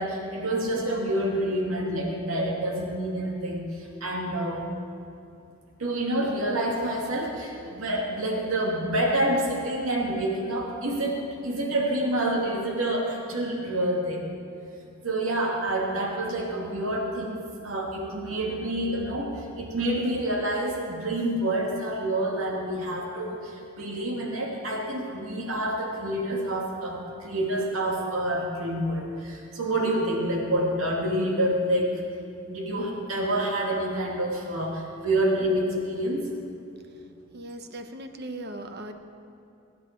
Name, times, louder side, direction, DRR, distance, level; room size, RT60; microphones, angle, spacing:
voice 1, 0.0-4.7 5.8-14.3 15.0-32.0 32.5-36.3, right 1 dB, 85° right, -1 dB, 2.4 m, -28 dB
voice 2, 37.3-38.9, right 1 dB, 50° right, 6 dB, 1.0 m, -38 dB
21.0 x 10.5 x 4.6 m, 2.6 s
head